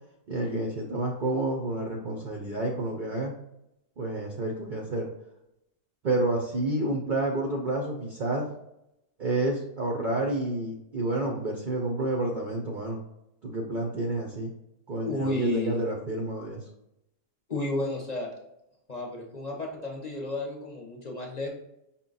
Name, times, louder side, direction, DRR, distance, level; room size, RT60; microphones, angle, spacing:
voice 1, 0.3-3.3 4.0-5.1 6.0-8.5 9.2-13.0 13.4-14.5 14.9-16.6, right 2 dB, 65° right, 0 dB, 0.5 m, -29 dB
voice 2, 15.0-15.8 17.5-18.3 18.9-21.5, left 2 dB, 45° left, 0 dB, 0.6 m, -32 dB
5.6 x 2.2 x 3.8 m, 0.83 s
omnidirectional pair, 1.6 m